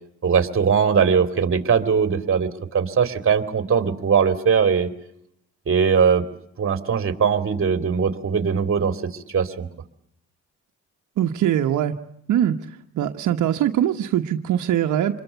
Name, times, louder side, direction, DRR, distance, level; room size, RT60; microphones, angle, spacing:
voice 1, 0.2-4.9 5.7-6.2 6.6-9.7, right 6 dB, 45° right, 11 dB, 2.8 m, -20 dB
voice 2, 11.2-12.0 12.3-15.2, right 10 dB, 80° right, 4 dB, 1.3 m, -22 dB
27.0 x 22.0 x 8.1 m, 0.74 s
cardioid pair, 90°, 30 cm